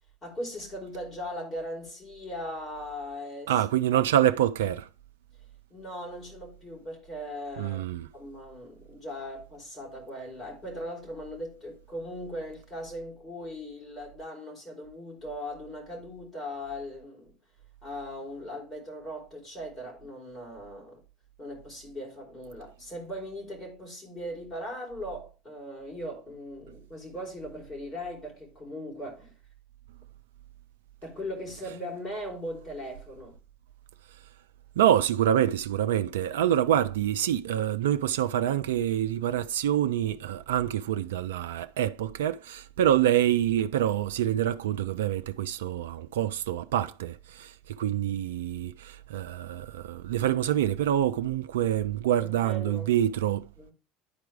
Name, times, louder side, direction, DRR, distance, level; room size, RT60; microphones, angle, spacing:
voice 1, 0.2-3.6 3.9-4.1 5.4-7.9 8.1-17.3 17.8-21.0 21.4-29.3 31.0-33.4 47.8-47.9 52.2-52.9 53.6-53.7, equal, 30° left, 4.9 m, -39 dB
voice 2, 3.5-4.9 7.6-8.1 34.8-53.5, right 11 dB, 70° right, 0.4 m, -26 dB
10.5 x 4.6 x 3.4 m
figure-of-eight pair, 70°, 0 cm